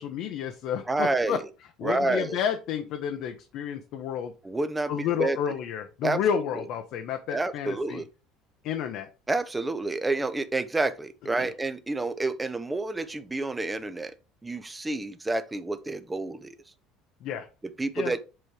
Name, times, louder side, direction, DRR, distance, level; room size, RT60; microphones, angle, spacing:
voice 1, 0.0-1.4 1.8-4.3 4.9-8.0 8.6-9.1 11.4-11.5 17.2-17.5 17.9-18.1, left 8 dB, 60° left, 0.8 m, -31 dB
voice 2, 0.9-1.4 1.8-2.4 4.4-5.4 6.0-6.4 7.3-8.1 9.3-14.1 14.4-16.6 17.8-18.2, right 2 dB, 10° right, 0.6 m, -29 dB
7.6 x 3.1 x 4.8 m
cardioid pair, 140°, 0 cm